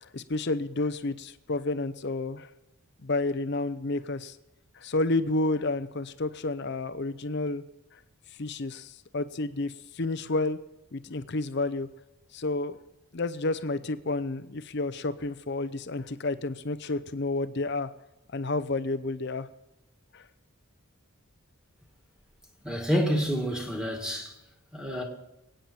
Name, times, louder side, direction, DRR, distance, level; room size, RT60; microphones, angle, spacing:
voice 1, 0.0-2.5 3.0-4.4 4.7-7.6 8.4-10.6 10.9-11.9 12.3-12.8 13.1-17.9 18.3-19.5 20.1-20.2, left 2 dB, 50° left, 0.7 m, -30 dB
voice 2, 22.6-24.3 24.7-25.0, equal, 5° right, 2.0 m, -28 dB
25.0 x 9.1 x 4.4 m
head